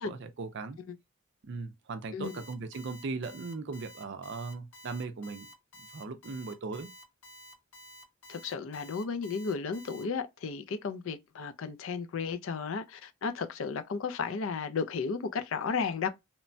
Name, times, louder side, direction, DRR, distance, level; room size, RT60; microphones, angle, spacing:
voice 1, 0.0-0.8 1.4-5.5 5.9-6.9, right 4 dB, 50° right, 0.4 m, -38 dB
Alarm, 2.2-10.0, left 1 dB, 85° left, 1.3 m, -51 dB
voice 2, 8.3-16.1, left 5 dB, 65° left, 0.4 m, -34 dB
3.0 x 2.1 x 2.5 m
head